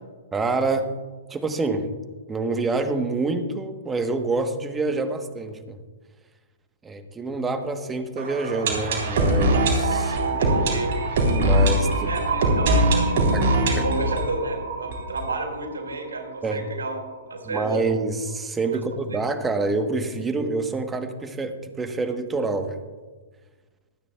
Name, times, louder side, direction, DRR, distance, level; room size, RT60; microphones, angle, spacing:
voice 1, 0.3-0.9 1.3-1.9 2.3-5.8 6.8-10.2 11.4-12.1 13.3-13.8 16.4-16.6 17.4-22.8, right 3 dB, 15° right, 7 dB, 1.0 m, -27 dB
sound 1, 8.2-15.9 16.2-16.3 16.5-16.6 17.1-17.2, right 1 dB, 60° right, 3.4 m, -22 dB
voice 2, 10.7-11.0 12.1-17.0 17.3-17.9 18.7-18.8 19.1-19.2, right 3 dB, 90° right, 2 dB, 4.2 m, -31 dB
25.0 x 9.7 x 2.3 m, 1.3 s
hypercardioid pair, 130°, 0 cm